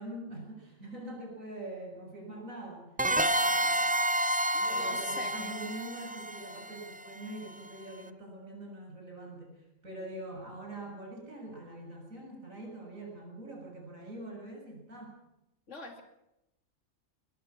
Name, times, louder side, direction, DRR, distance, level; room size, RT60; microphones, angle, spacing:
voice 1, 0.0-2.9 4.7-15.1, right 1 dB, 85° right, 1 dB, 7.5 m, -44 dB
sound 1, 3.0-7.5, right 1 dB, 10° right, 0.4 m, -30 dB
voice 2, 4.5-5.6 15.7-16.0, left 2 dB, 65° left, 5 dB, 3.0 m, -43 dB
22.5 x 20.5 x 5.9 m, 0.88 s
omnidirectional pair, 1.4 m